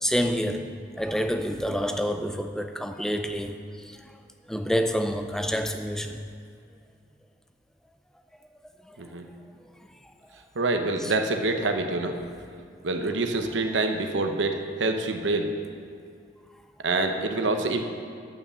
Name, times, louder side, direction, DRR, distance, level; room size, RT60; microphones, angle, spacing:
voice 1, 0.0-4.2 4.5-6.2 8.8-9.0 9.8-9.9 11.0-11.1, equal, 5° left, 7 dB, 0.4 m, -28 dB
voice 2, 10.5-12.2 12.8-15.5 16.8-17.8, right 2 dB, 85° right, 5 dB, 0.8 m, -26 dB
9.3 x 5.6 x 7.1 m, 2.3 s
head